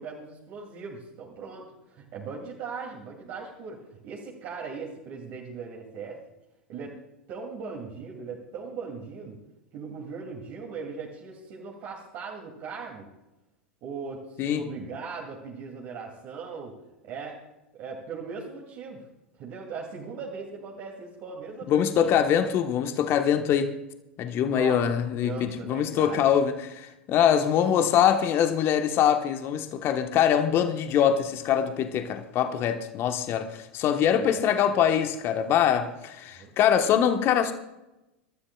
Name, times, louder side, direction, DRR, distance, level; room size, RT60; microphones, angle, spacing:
voice 1, 0.0-6.2 6.7-7.0 7.3-9.4 9.7-13.1 13.8-16.8 17.0-17.4 17.7-19.0 19.4-22.2 24.4-24.8 25.1-26.3 34.2-34.8 36.3-36.6, right 5 dB, 45° right, -3 dB, 2.7 m, -39 dB
voice 2, 21.7-23.7 24.2-37.5, left 9 dB, 40° left, 7 dB, 1.2 m, -23 dB
26.5 x 13.0 x 2.4 m, 0.95 s
figure-of-eight pair, 90°, 6 cm